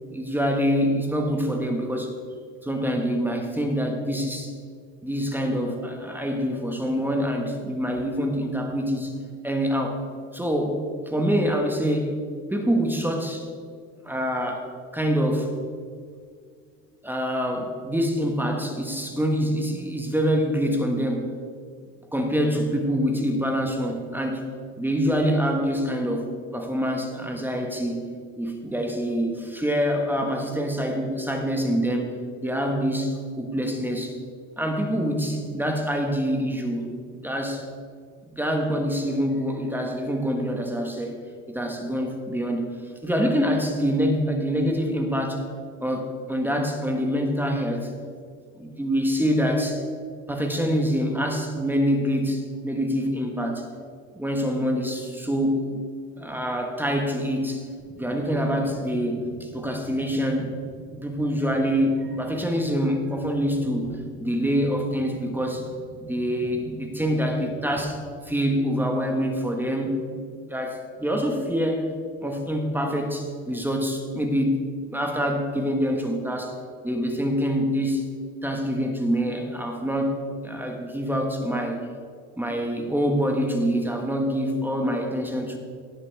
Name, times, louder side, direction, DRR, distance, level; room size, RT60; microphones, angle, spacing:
voice 1, 0.1-2.1 2.6-4.5 5.0-9.1 9.4-10.0 10.3-12.2 12.5-13.5 14.0-15.5 17.0-21.3 22.1-24.4 24.8-28.0 28.4-34.1 34.6-37.7 38.2-41.2 41.5-42.8 43.0-45.5 45.8-47.9 48.5-49.8 50.3-53.7 54.1-55.8 56.2-57.7 58.0-60.5 60.9-63.9 64.2-65.7 66.1-71.9 72.2-78.0 78.4-80.2 80.4-81.9 82.4-85.6, equal, 5° right, 3 dB, 1.5 m, -25 dB
sound 1, 57.8-67.8, equal, 45° right, 3.3 m, -43 dB
17.5 x 6.0 x 4.7 m, 2.1 s
supercardioid pair, 115°, 36 cm